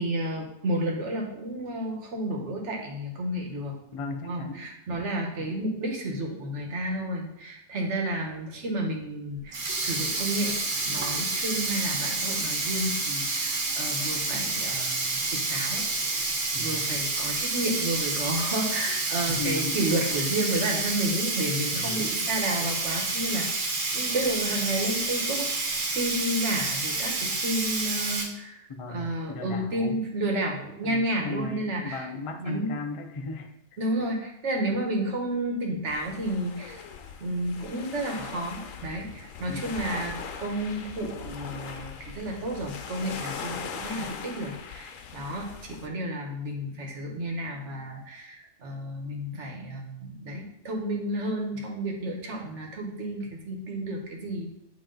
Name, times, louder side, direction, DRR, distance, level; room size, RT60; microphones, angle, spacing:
voice 1, 0.0-3.7 4.3-10.5 10.8-15.8 16.6-28.6 28.9-32.1 32.4-32.7 33.8-36.8 37.2-40.1 40.4-54.5, right 1 dB, 65° right, 1 dB, 1.4 m, -31 dB
voice 2, 3.9-4.7 5.4-5.5 16.5-17.0 19.3-19.9 21.7-22.1 28.7-30.0 30.8-33.5 39.5-39.8, left 3 dB, 50° left, 5 dB, 0.4 m, -37 dB
Sink (filling or washing), 9.4-28.2, right 3 dB, 80° right, 1.5 m, -29 dB
sound 1, 35.9-45.9, left 6 dB, 80° left, 1.0 m, -40 dB
8.8 x 3.0 x 3.8 m, 0.82 s
omnidirectional pair, 1.3 m